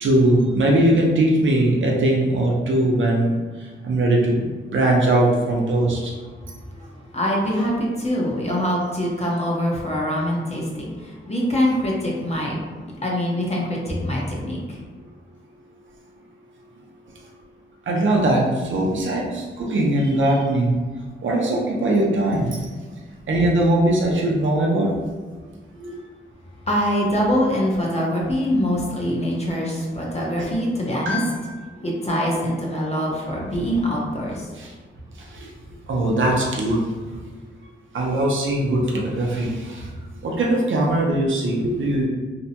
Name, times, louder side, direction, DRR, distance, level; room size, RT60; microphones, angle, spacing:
voice 1, 0.0-3.4 3.8-6.1 17.9-20.8 21.2-22.6 23.3-24.9 25.8-26.0 31.1-31.5 34.6-34.7 35.3-35.5 35.9-36.9 37.9-39.9 40.2-42.1, right 1 dB, 70° right, -2 dB, 0.6 m, -20 dB
voice 2, 6.3-14.8 26.7-31.2 31.8-34.5, equal, 30° left, -3 dB, 0.8 m, -24 dB
2.7 x 2.1 x 2.8 m, 1.4 s
cardioid pair, 65°, 21 cm